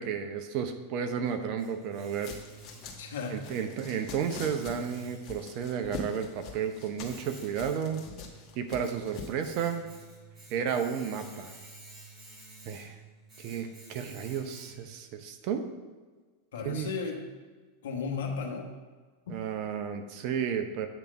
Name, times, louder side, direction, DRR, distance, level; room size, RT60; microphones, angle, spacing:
voice 1, 0.0-2.4 3.3-8.0 8.6-9.8 10.5-11.5 12.6-13.0 13.4-15.6 16.6-16.9 19.3-20.9, right 7 dB, 50° right, 7 dB, 0.8 m, -32 dB
Domestic sounds home sounds, 0.8-15.1, right 3 dB, 25° right, 2.6 m, -52 dB
sound 1, 2.1-9.5, left 4 dB, 45° left, 1.4 m, -44 dB
voice 2, 3.0-3.6 16.5-17.3 17.8-18.7 19.3-19.4, left 5 dB, 70° left, 2 dB, 1.1 m, -35 dB
8.0 x 3.5 x 6.6 m, 1.4 s
hypercardioid pair, 95°, 0 cm